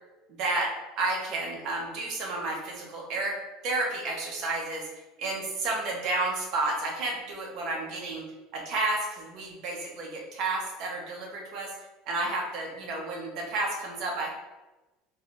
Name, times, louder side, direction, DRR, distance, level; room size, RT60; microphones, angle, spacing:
voice 1, 0.3-3.4 3.6-4.8 5.2-8.2 8.5-11.7 12.1-14.3, right 2 dB, 60° right, -1 dB, 1.0 m, -31 dB
4.1 x 2.6 x 2.5 m, 1.1 s
supercardioid pair, 100°, 0 cm